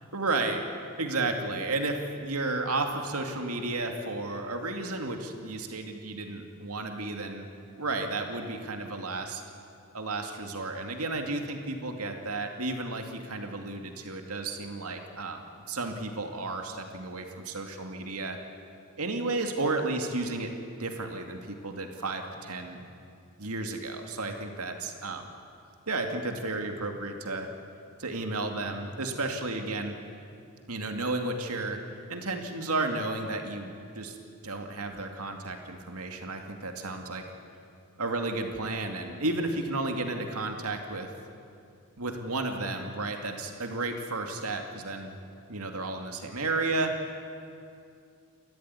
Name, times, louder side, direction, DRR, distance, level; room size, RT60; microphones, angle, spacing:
voice 1, 0.1-0.7 1.0-7.4 7.8-9.4 9.9-15.4 15.7-18.4 19.0-22.8 23.4-25.3 25.9-27.5 28.0-30.0 30.7-31.8 32.1-34.2 34.4-37.3 38.0-41.1 42.0-45.2 45.5-47.2, right 2 dB, 75° right, 4 dB, 2.4 m, -32 dB
29.0 x 14.0 x 9.8 m, 2.5 s
head